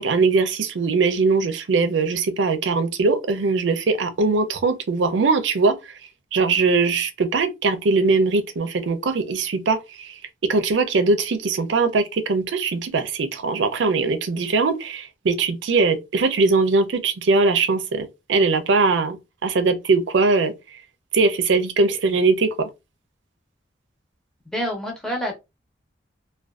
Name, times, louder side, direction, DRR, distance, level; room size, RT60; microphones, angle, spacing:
voice 1, 0.0-5.9 6.3-19.2 19.4-20.5 21.1-22.7, right 4 dB, 80° right, 0.5 m, -21 dB
voice 2, 24.5-25.3, equal, 5° left, 0.7 m, -27 dB
2.4 x 2.3 x 2.3 m
head